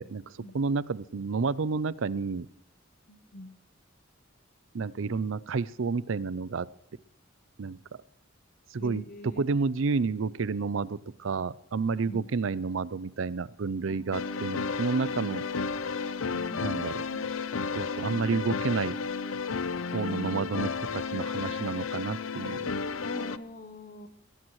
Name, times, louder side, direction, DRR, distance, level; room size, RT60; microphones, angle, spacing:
voice 1, 0.0-2.5 4.7-6.7 7.6-7.8 8.7-15.4 16.6-17.3 17.7-19.0 19.9-22.7, right 4 dB, 70° right, 19 dB, 0.5 m, -30 dB
voice 2, 3.1-3.5 8.8-9.5 12.0-12.3 13.8-14.0 16.3-16.8 23.0-24.1, left 2 dB, 45° left, 11 dB, 0.9 m, -43 dB
sound 1, 14.1-23.4, left 5 dB, 80° left, 0.6 m, -32 dB
21.5 x 17.0 x 3.2 m, 0.72 s
head